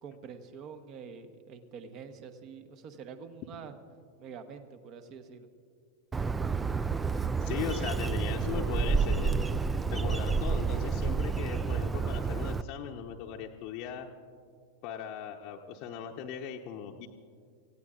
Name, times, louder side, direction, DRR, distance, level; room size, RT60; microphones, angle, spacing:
voice 1, 0.0-3.7 4.2-5.5, right 6 dB, 40° right, 9 dB, 1.1 m, -46 dB
Bird, 6.1-12.6, right 5 dB, 15° right, 0.4 m, -29 dB
voice 2, 7.4-9.5 9.9-14.1 14.8-17.1, left 8 dB, 40° left, 1 dB, 0.8 m, -38 dB
27.5 x 16.5 x 2.5 m, 2.2 s
figure-of-eight pair, 90°, 0 cm